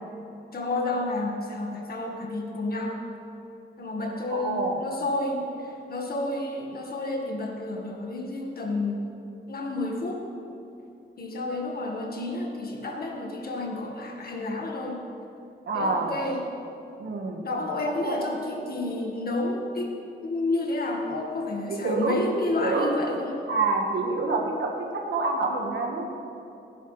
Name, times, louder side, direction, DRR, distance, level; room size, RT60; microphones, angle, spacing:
voice 1, 0.5-3.0 3.8-9.1 9.5-10.2 11.2-15.0 15.7-16.5 17.4-20.0 20.2-23.4, left 2 dB, 50° left, 1 dB, 1.7 m, -30 dB
voice 2, 4.3-4.8 15.7-16.1 17.0-17.4 18.0-18.3 21.7-22.2 22.6-22.9 23.5-26.1, right 3 dB, 65° right, 1 dB, 1.6 m, -27 dB
16.5 x 11.0 x 3.3 m, 2.8 s
wide cardioid pair, 145°, 20 cm